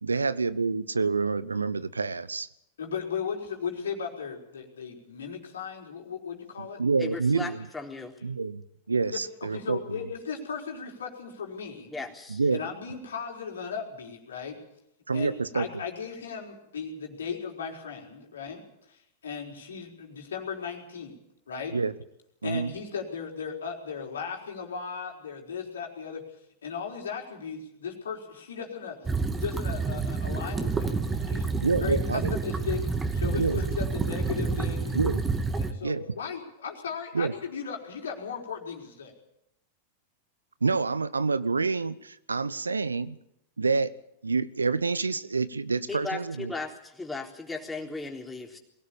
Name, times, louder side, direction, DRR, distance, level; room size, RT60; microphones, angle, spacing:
voice 1, 0.0-2.5 6.6-7.7 8.2-8.6 8.9-10.0 12.3-12.6 15.1-15.6 21.7-21.9 22.4-22.7 31.6-32.4 33.4-33.6 34.9-35.2 35.8-36.0 37.1-37.3 40.6-43.2 43.6-43.9 44.2-46.5, right 4 dB, 80° right, 17 dB, 0.8 m, -27 dB
voice 2, 2.8-6.8 9.1-11.9 12.5-14.6 15.1-18.6 18.9-21.2 21.5-21.7 22.4-26.2 26.6-31.5 31.8-35.0 35.5-39.1, left 6 dB, 70° left, 1 dB, 4.4 m, -36 dB
voice 3, 7.0-8.1 11.9-12.4 45.9-48.6, left 3 dB, 10° left, 1 dB, 3.8 m, -36 dB
sound 1, 29.1-35.7, right 4 dB, 15° right, 2.1 m, -29 dB
22.0 x 17.0 x 8.7 m, 0.80 s
figure-of-eight pair, 95°, 0 cm